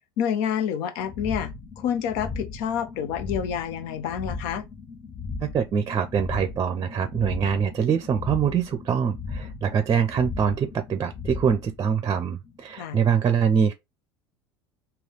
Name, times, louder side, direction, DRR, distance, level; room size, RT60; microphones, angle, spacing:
voice 1, 0.2-4.7 12.8-13.0, left 8 dB, 60° left, 0.7 m, -28 dB
sound 1, 1.0-12.8, left 4 dB, 20° left, 0.7 m, -37 dB
voice 2, 5.4-13.7, right 7 dB, 30° right, 0.6 m, -24 dB
3.2 x 2.9 x 4.0 m
hypercardioid pair, 80°, 13 cm